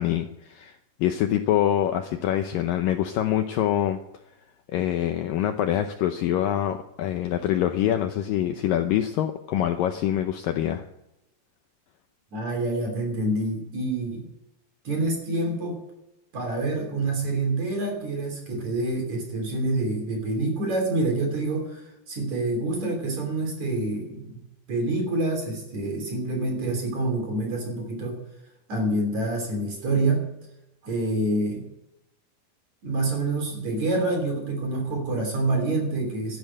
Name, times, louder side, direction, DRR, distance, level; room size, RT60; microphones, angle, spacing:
voice 1, 0.0-4.0 4.7-10.8, left 11 dB, 80° left, 7 dB, 2.0 m, -25 dB
voice 2, 12.3-14.3 14.8-15.8 16.3-24.4 24.7-28.2 28.7-30.3 30.8-31.7 32.8-36.4, right 2 dB, 45° right, 3 dB, 4.3 m, -27 dB
12.5 x 12.0 x 7.9 m, 0.89 s
omnidirectional pair, 4.9 m